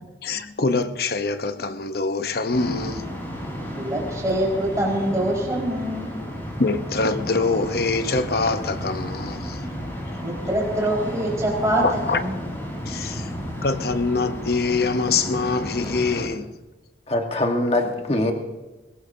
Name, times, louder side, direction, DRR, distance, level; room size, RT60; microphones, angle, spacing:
voice 1, 0.2-3.1 6.6-9.6 11.8-12.2 12.9-13.3 13.6-16.5, left 3 dB, 55° left, 0.8 m, -24 dB
sound 1, 2.5-16.3, equal, 10° left, 4.1 m, -33 dB
voice 2, 3.8-6.2 10.2-12.4 13.0-13.4, right 1 dB, 20° right, 4.7 m, -25 dB
voice 3, 17.1-18.3, left 1 dB, 35° left, 1.4 m, -22 dB
21.5 x 18.5 x 2.7 m
head